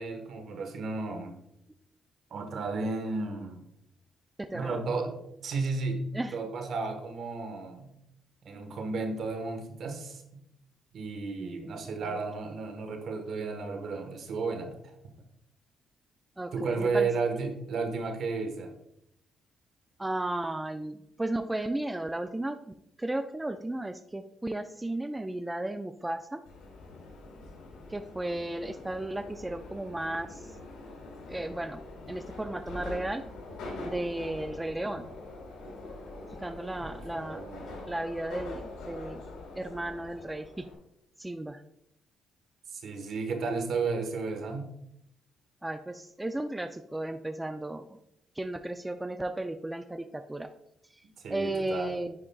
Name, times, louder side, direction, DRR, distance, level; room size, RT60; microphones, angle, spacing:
voice 1, 0.0-1.3 2.3-3.6 4.5-5.2 5.4-7.9 8.4-10.2 10.9-14.7 16.5-18.7 36.8-36.9 37.2-37.7 42.7-44.7 51.2-52.0, right 4 dB, 65° right, 5 dB, 1.3 m, -33 dB
voice 2, 4.4-4.8 6.1-6.4 11.4-12.2 16.4-17.1 20.0-26.4 27.9-30.6 31.3-31.8 32.1-33.2 33.8-35.1 36.4-37.4 37.9-39.2 39.6-40.7 41.2-41.6 45.6-48.0 48.4-50.5 50.9-51.0 51.3-52.1, right 1 dB, 10° right, 9 dB, 0.3 m, -34 dB
Subway metro underground, 26.5-40.7, left 2 dB, 85° left, 1.8 m, -44 dB
9.7 x 5.0 x 2.3 m, 0.79 s
cardioid pair, 90°, 0 cm